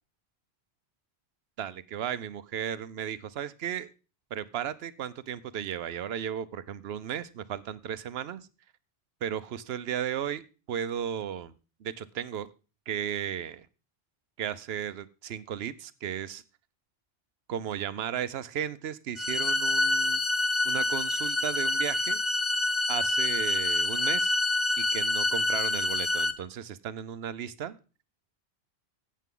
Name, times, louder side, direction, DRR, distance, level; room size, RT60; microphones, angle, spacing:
voice 1, 1.6-3.9 4.3-8.5 9.2-10.4 10.7-12.5 12.9-13.7 14.4-16.4 17.5-20.2 20.6-22.2 22.9-24.3 24.8-27.8, right 9 dB, 70° right, 0.9 m, -35 dB
sound 1, 19.2-26.3, left 2 dB, 15° left, 0.5 m, -27 dB
14.0 x 8.3 x 3.7 m
omnidirectional pair, 1.1 m